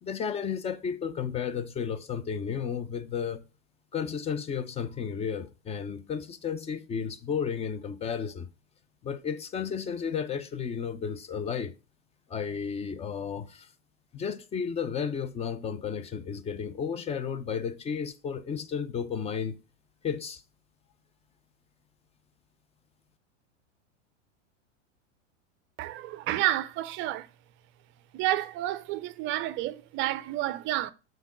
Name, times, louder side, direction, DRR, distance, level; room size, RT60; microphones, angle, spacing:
voice 1, 0.0-3.4 3.9-8.5 9.0-11.7 12.3-13.7 14.1-19.6 20.0-20.4, left 7 dB, 15° left, 0.5 m, -33 dB
voice 2, 25.8-27.3 28.1-30.9, right 14 dB, 30° right, 0.5 m, -30 dB
7.2 x 3.9 x 4.6 m
hypercardioid pair, 110°, 38 cm